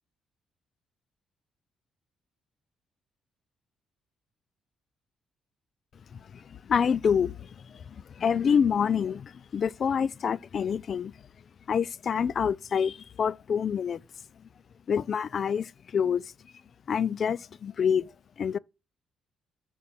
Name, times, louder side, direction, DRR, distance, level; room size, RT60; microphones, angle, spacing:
voice 1, 6.3-11.1 11.7-14.0 14.9-16.3 16.9-18.1 18.4-18.6, left 7 dB, 50° left, 0.4 m, -27 dB
6.8 x 3.6 x 6.0 m
cardioid pair, 90°, 0 cm